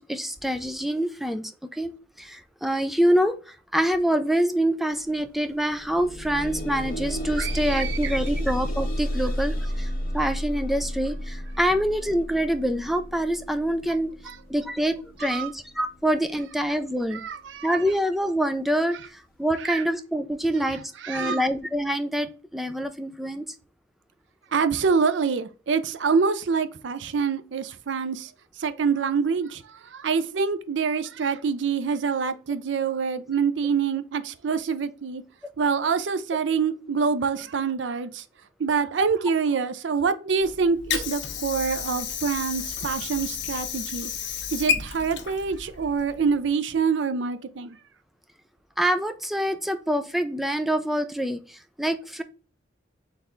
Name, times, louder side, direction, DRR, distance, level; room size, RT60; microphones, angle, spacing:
voice 1, 0.0-1.9 2.2-14.1 14.5-17.2 17.6-23.5 48.8-52.2, equal, ahead, 0.4 m, -26 dB
sound 1, 5.0-5.1 5.5-16.5 17.3-17.4 17.8-17.9, equal, 50° left, 1.2 m, -32 dB
voice 2, 7.4-8.5 14.3-14.4 15.2-15.5 17.1-17.8 19.6-19.8 21.0-21.4 24.5-28.3 28.6-35.2 35.6-38.2 38.6-44.1 44.5-47.8, right 5 dB, 80° right, 0.5 m, -26 dB
Water / Sink (filling or washing), 40.4-46.4, left 7 dB, 75° left, 0.7 m, -32 dB
4.2 x 3.3 x 3.7 m
head